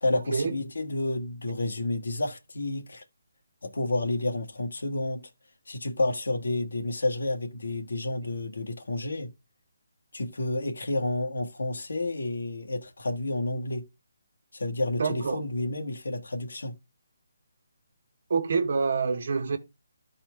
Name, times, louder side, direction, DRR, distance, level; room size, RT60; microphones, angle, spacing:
voice 1, 0.0-3.0 3.6-5.3 5.7-9.3 10.1-13.9 14.5-16.7, left 2 dB, 80° left, 1.5 m, -30 dB
voice 2, 15.0-15.4 18.3-19.6, right 5 dB, 60° right, 1.2 m, -26 dB
13.0 x 4.3 x 3.4 m
hypercardioid pair, 160°, 0 cm